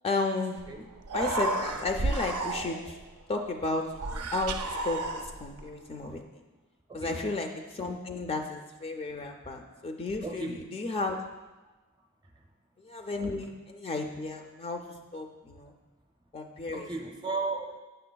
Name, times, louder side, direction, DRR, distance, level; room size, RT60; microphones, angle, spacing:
voice 1, 0.0-0.6 1.1-3.0 3.3-4.6 4.8-6.2 6.9-11.2 12.8-14.8 15.1-15.7 16.3-16.9, left 3 dB, 25° left, 3 dB, 0.3 m, -33 dB
Human voice, 0.6-0.7 1.0-3.0 3.9-5.6, right 2 dB, 90° right, 0.5 m, -32 dB
voice 2, 6.9-7.2 10.2-10.7 12.3-12.5 15.5-15.6 16.7-17.8, right 3 dB, 20° right, 2 dB, 0.6 m, -35 dB
7.7 x 6.6 x 2.2 m, 1.2 s
head